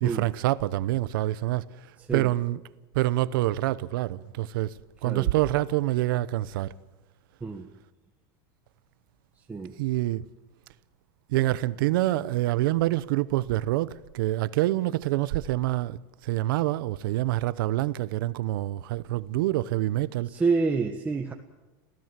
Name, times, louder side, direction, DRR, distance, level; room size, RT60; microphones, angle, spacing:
voice 1, 0.0-1.7 2.1-2.6 2.9-4.7 5.0-6.7 9.8-10.2 11.3-16.0 16.2-20.3, right 16 dB, 80° right, 0.9 m, -26 dB
voice 2, 2.0-2.3 5.0-5.3 7.4-7.7 9.5-9.7 20.3-21.3, right 4 dB, 15° right, 1.4 m, -28 dB
28.0 x 16.0 x 7.5 m
supercardioid pair, 135°, 11 cm